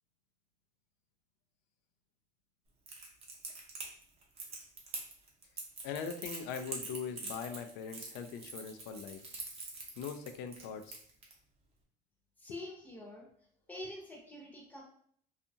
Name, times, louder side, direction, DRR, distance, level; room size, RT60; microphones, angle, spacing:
Crackle, 2.9-11.3, right 3 dB, 35° right, 0.7 m, -44 dB
voice 1, 5.8-9.2 10.0-11.0, left 6 dB, 85° left, 8 dB, 0.4 m, -41 dB
voice 2, 12.4-13.3 13.7-14.8, left 1 dB, 10° left, -1 dB, 0.7 m, -46 dB
2.7 x 2.4 x 2.6 m, 0.62 s
cardioid pair, 140°, 19 cm